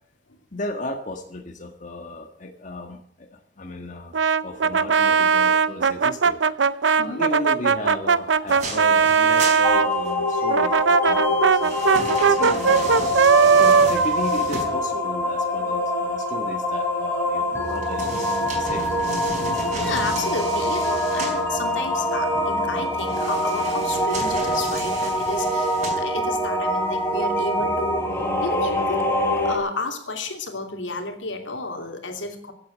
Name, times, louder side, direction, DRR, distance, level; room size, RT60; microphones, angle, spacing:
voice 1, 0.5-4.1 4.4-6.4 7.0-18.8, left 1 dB, 40° left, 4 dB, 1.6 m, -35 dB
Brass instrument, 4.1-9.9 10.5-15.3, right 6 dB, 80° right, 0.6 m, -19 dB
sound 1, 8.5-10.4 11.2-15.2 17.6-21.5 23.0-26.5 27.0-27.1, right 3 dB, 40° right, 4.5 m, -34 dB
sound 2, 9.6-29.6, left 1 dB, 15° left, 3.2 m, -24 dB
voice 2, 19.7-28.1 28.4-29.0 29.4-32.5, left 3 dB, 85° left, 4 dB, 2.9 m, -32 dB
16.0 x 8.6 x 8.6 m, 0.66 s
head